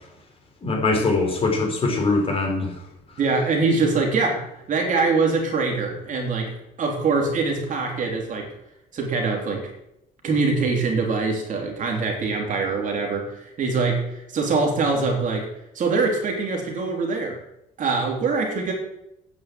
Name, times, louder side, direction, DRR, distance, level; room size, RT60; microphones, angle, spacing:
voice 1, 0.6-2.7, left 3 dB, 35° left, 1 dB, 3.9 m, -22 dB
voice 2, 3.2-8.5 8.9-9.6 10.2-15.5 15.7-17.4 17.8-18.7, right 4 dB, 50° right, 1 dB, 3.5 m, -23 dB
9.5 x 6.1 x 7.7 m, 0.83 s
cardioid pair, 110°, 17 cm